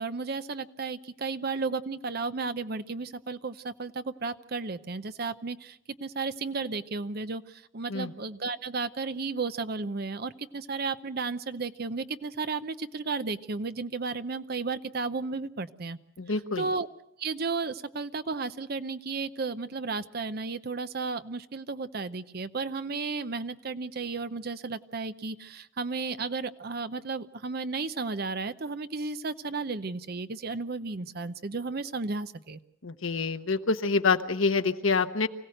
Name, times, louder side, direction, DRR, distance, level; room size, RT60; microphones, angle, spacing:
voice 1, 0.0-16.0 16.3-16.9 17.2-32.6, right 4 dB, 50° right, 12 dB, 0.7 m, -33 dB
voice 2, 16.2-16.7 32.8-35.3, left 4 dB, 80° left, 8 dB, 1.1 m, -26 dB
25.0 x 16.0 x 7.8 m, 0.83 s
head